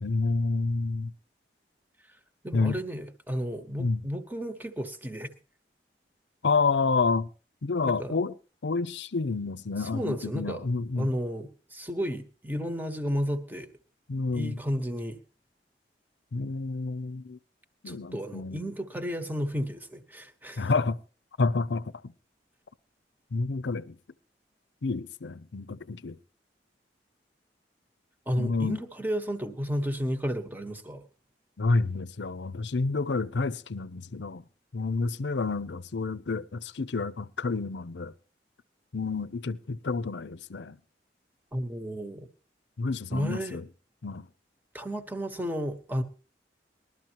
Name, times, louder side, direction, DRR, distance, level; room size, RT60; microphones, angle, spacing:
voice 1, 0.0-1.1 2.5-2.8 3.8-4.0 6.4-7.3 7.6-8.3 8.6-11.1 14.1-14.6 16.3-17.4 17.8-18.7 20.6-21.0 21.4-21.9 23.3-23.9 24.8-26.2 28.3-28.8 31.6-34.4 34.7-38.1 38.9-40.8 42.8-43.6 44.0-44.3, left 3 dB, 80° left, 0.6 m, -29 dB
voice 2, 2.4-5.3 7.8-8.2 9.8-10.7 11.0-13.7 14.3-15.2 17.8-20.7 28.3-31.0 41.5-42.3 43.1-43.6 44.7-46.0, equal, 10° right, 1.2 m, -32 dB
21.0 x 12.5 x 3.0 m
head